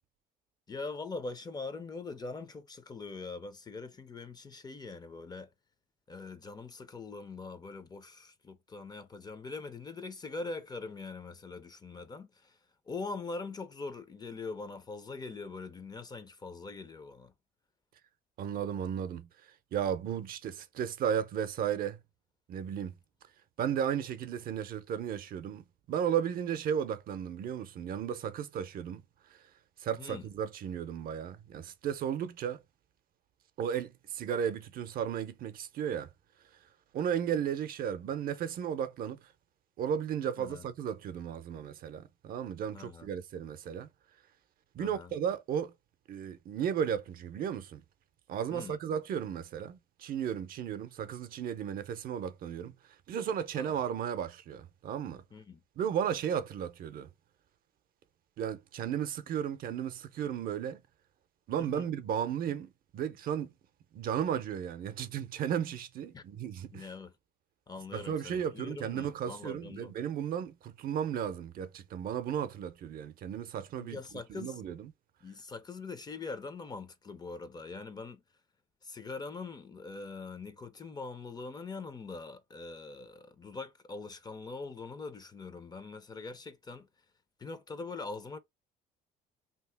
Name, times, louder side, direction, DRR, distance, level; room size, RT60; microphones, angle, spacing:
voice 1, 0.7-5.5 6.1-12.6 12.9-17.3 30.0-30.3 40.4-40.6 42.7-43.1 44.8-45.1 48.5-48.8 53.6-53.7 55.3-55.6 61.6-61.9 66.1-66.2 66.7-67.1 67.7-69.9 73.8-74.6 75.2-78.2 78.8-86.9 87.4-88.4, left 3 dB, 25° left, 0.5 m, -42 dB
voice 2, 18.4-19.3 19.7-22.0 22.5-23.0 23.6-29.0 29.3-29.4 29.8-32.6 33.6-36.1 36.9-39.2 39.8-43.9 44.7-45.7 46.1-47.8 48.3-52.7 53.1-55.2 55.8-57.1 58.4-60.8 61.5-63.5 63.9-66.9 67.9-74.9, right 8 dB, 60° right, 0.6 m, -34 dB
2.8 x 2.7 x 3.3 m
cardioid pair, 110°, 17 cm